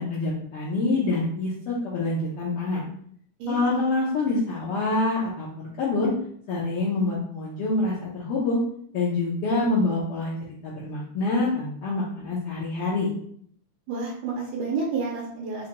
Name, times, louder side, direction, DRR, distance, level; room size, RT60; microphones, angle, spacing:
voice 1, 0.0-2.8 3.5-6.1 6.5-8.6 8.9-10.3 10.6-13.1, left 2 dB, 85° left, -6 dB, 1.2 m, -26 dB
voice 2, 3.4-3.8 13.9-15.7, right 4 dB, 85° right, -4 dB, 2.1 m, -30 dB
5.1 x 2.2 x 2.9 m, 0.63 s
omnidirectional pair, 3.4 m